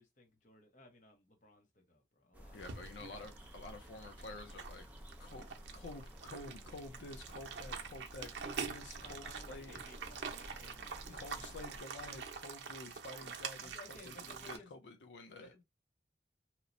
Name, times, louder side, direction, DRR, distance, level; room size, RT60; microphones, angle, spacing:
voice 1, 0.0-2.6 9.0-11.2 13.6-14.7 15.4-15.6, left 2 dB, 45° left, 0.7 m, -59 dB
sound 1, 2.3-11.8, equal, 10° right, 0.4 m, -53 dB
voice 2, 2.5-4.9 5.2-5.5 5.7-9.7 11.1-15.5, left 2 dB, 85° left, 0.5 m, -50 dB
sound 2, 2.6-14.6, right 6 dB, 90° right, 0.5 m, -46 dB
2.9 x 2.1 x 2.5 m
head